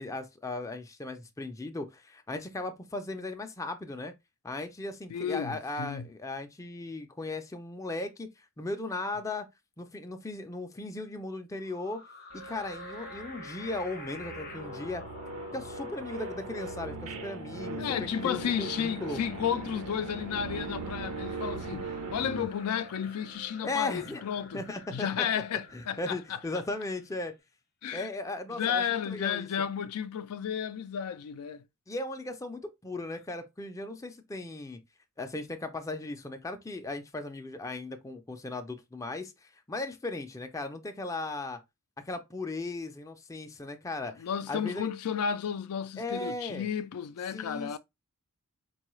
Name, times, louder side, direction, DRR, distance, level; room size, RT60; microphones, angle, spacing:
voice 1, 0.0-4.1 4.4-9.5 9.8-12.0 12.3-15.0 15.5-19.2 23.6-24.2 24.5-25.1 25.7-27.3 27.9-29.5 31.9-34.8 35.2-41.6 42.1-44.9 46.0-46.7 47.3-47.8, left 2 dB, 15° left, 0.4 m, -37 dB
voice 2, 5.1-6.1 17.8-24.6 24.9-26.4 27.8-28.1 28.5-31.6 44.2-47.8, left 8 dB, 80° left, 0.4 m, -33 dB
sound 1, 11.6-27.2, left 4 dB, 45° left, 0.7 m, -50 dB
sound 2, 12.3-22.4, right 3 dB, 80° right, 0.8 m, -40 dB
sound 3, 19.5-27.4, right 6 dB, 45° right, 0.5 m, -55 dB
4.6 x 2.3 x 3.0 m
head